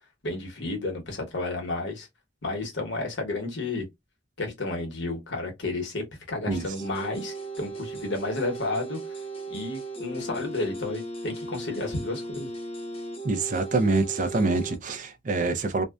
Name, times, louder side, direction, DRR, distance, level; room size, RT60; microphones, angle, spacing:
voice 1, 0.2-2.1 2.4-3.8 4.4-9.0 9.5-12.5, left 2 dB, 75° left, 1.0 m, -32 dB
sound 1, 6.5-14.8, right 2 dB, 30° left, 0.7 m, -37 dB
voice 2, 13.2-15.8, right 3 dB, 45° right, 0.4 m, -25 dB
2.6 x 2.1 x 2.2 m
head